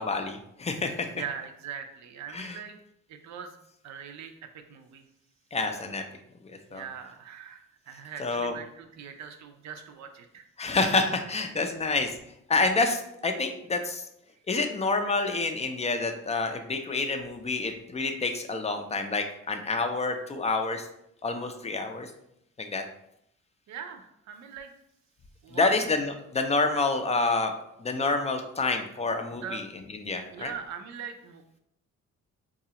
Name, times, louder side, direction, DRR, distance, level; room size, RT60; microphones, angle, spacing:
voice 1, 0.0-1.1 2.3-2.6 5.5-6.0 6.7-6.8 8.2-8.5 10.6-12.1 12.5-14.0 14.5-20.9 21.2-22.1 22.6-22.8 25.5-27.5 27.8-29.6 30.0-30.5, left 3 dB, 20° left, 6 dB, 0.4 m, -28 dB
voice 2, 1.1-2.8 3.1-3.6 3.8-5.0 6.7-10.5 23.7-24.7 25.4-25.9 29.3-29.6 30.3-31.6, right 7 dB, 65° right, 5 dB, 0.5 m, -41 dB
3.9 x 2.3 x 2.8 m, 0.78 s
cardioid pair, 90°, 30 cm